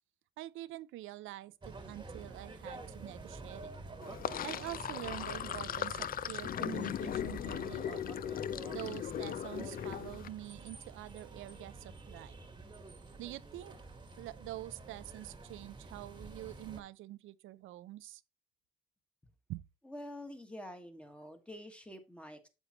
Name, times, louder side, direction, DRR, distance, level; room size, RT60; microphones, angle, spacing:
voice 1, 0.4-3.7 4.4-8.2 8.7-12.4 13.2-13.8 14.2-18.2 19.5-19.6, right 15 dB, 80° right, 0.4 m, -46 dB
sound 1, 1.6-16.8, right 3 dB, 20° right, 1.3 m, -49 dB
Sink (filling or washing), 4.0-10.3, left 10 dB, 45° left, 0.4 m, -38 dB
voice 2, 19.8-22.5, left 1 dB, 5° left, 1.5 m, -47 dB
8.1 x 7.2 x 2.9 m
cardioid pair, 90°, 20 cm